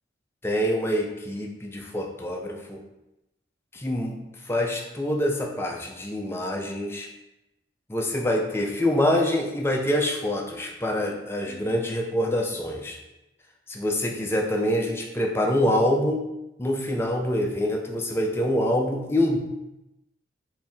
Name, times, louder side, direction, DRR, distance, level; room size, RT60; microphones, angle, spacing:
voice 1, 0.4-2.8 3.7-4.1 4.5-7.1 7.9-13.0 13.7-16.2 16.6-19.4, left 1 dB, 15° left, 1 dB, 0.4 m, -25 dB
4.6 x 2.6 x 3.4 m, 0.95 s
head